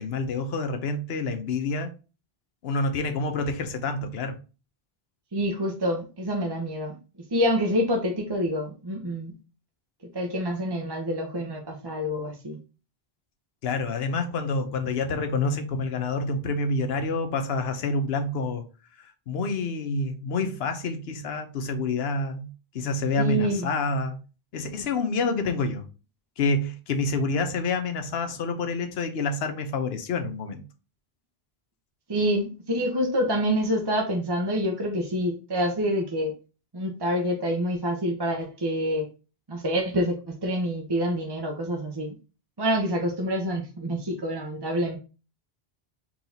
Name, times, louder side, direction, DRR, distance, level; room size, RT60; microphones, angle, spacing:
voice 1, 0.0-1.9 2.6-4.4 13.6-18.6 19.0-22.5 22.7-24.2 24.5-25.8 26.4-30.6, left 3 dB, 80° left, 1.0 m, -28 dB
voice 2, 5.3-7.0 7.3-9.3 10.1-12.6 23.2-23.7 32.1-36.3 36.7-39.1 39.5-42.1 42.6-45.0, equal, 30° right, 0.7 m, -27 dB
4.4 x 3.9 x 2.7 m
omnidirectional pair, 1.0 m